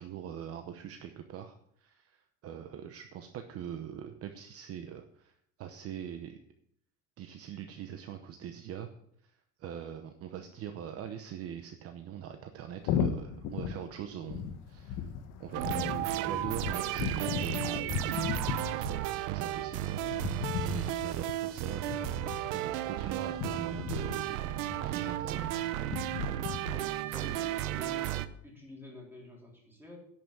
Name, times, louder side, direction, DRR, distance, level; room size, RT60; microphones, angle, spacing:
voice 1, 0.0-6.4 7.2-8.9 9.2-9.3 9.6-15.1 15.4-15.8 16.2-17.8 18.7-20.1 20.7-22.1 22.5-24.4 24.8-25.7, right 9 dB, 40° right, 7 dB, 0.9 m, -42 dB
sound 1, 12.8-26.7, left 7 dB, 60° left, 1.3 m, -37 dB
sound 2, 15.5-28.3, right 14 dB, 85° right, 0.8 m, -34 dB
voice 2, 26.7-30.0, left 1 dB, 5° right, -2 dB, 3.6 m, -49 dB
11.0 x 6.1 x 7.4 m, 0.70 s
cardioid pair, 150°, 35 cm